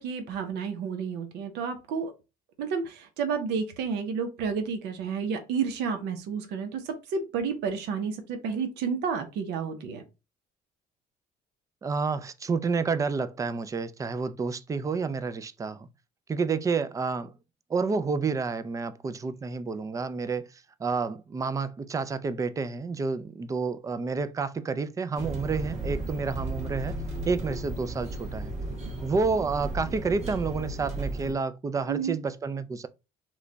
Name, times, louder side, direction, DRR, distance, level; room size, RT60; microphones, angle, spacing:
voice 1, 0.0-2.1 2.6-10.0 31.9-32.2, right 6 dB, 85° right, 0.7 m, -31 dB
voice 2, 11.8-15.9 16.3-17.3 17.7-20.5 20.8-27.0 27.3-28.5 29.0-32.9, right 4 dB, 20° right, 0.3 m, -29 dB
sound 1, 25.1-31.3, right 2 dB, 40° right, 1.3 m, -34 dB
3.0 x 2.2 x 3.8 m
cardioid pair, 110°, 17 cm